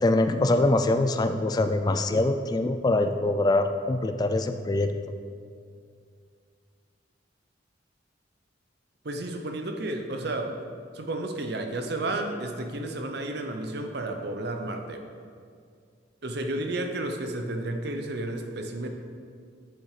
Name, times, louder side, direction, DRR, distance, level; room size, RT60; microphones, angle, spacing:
voice 1, 0.0-4.9, left 2 dB, 20° left, 8 dB, 0.3 m, -24 dB
voice 2, 9.0-10.6 10.9-15.0 16.2-18.9, right 2 dB, 60° right, 4 dB, 0.7 m, -32 dB
6.8 x 6.6 x 4.9 m, 2.2 s
head